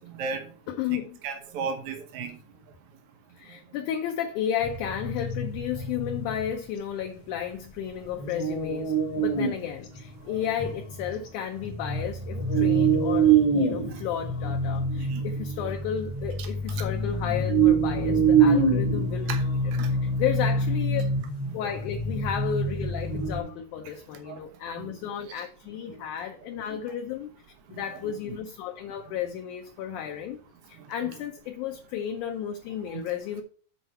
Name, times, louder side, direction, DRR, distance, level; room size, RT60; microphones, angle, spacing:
voice 1, 0.7-1.2 3.4-19.4 20.0-21.0 21.5-27.3 27.7-30.4 30.7-33.4, left 9 dB, 75° left, 1.9 m, -33 dB
voice 2, 1.2-2.4 10.3-10.4 13.9-14.0 15.0-15.2 16.4-16.5 16.7-16.8 19.3-19.4 19.8-19.9 24.3-24.4 24.8-24.9 26.7-26.8 28.0-28.4 32.9-33.0, right 5 dB, 90° right, 1.2 m, -35 dB
sound 1, 4.6-6.5 8.2-9.6 10.0-10.1 10.6-11.1 11.6-23.4, right 4 dB, 55° left, 1.4 m, -25 dB
7.8 x 4.5 x 5.5 m
omnidirectional pair, 4.2 m